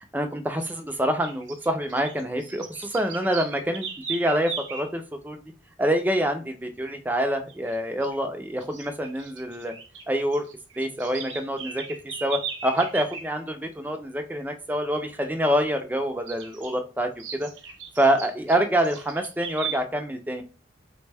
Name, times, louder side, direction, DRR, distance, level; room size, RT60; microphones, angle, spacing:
voice 1, 0.1-5.4 5.8-9.7 10.1-10.4 10.8-11.8 12.2-17.5 18.0-20.4, equal, 10° right, 6 dB, 0.3 m, -26 dB
sound 1, 0.6-0.8 1.2-4.9 7.5-7.8 8.0-8.2 8.6-10.1 10.3-13.3 16.3-16.7 17.2-19.8, right 6 dB, 90° right, 0.7 m, -37 dB
3.4 x 2.1 x 3.3 m, 0.34 s
head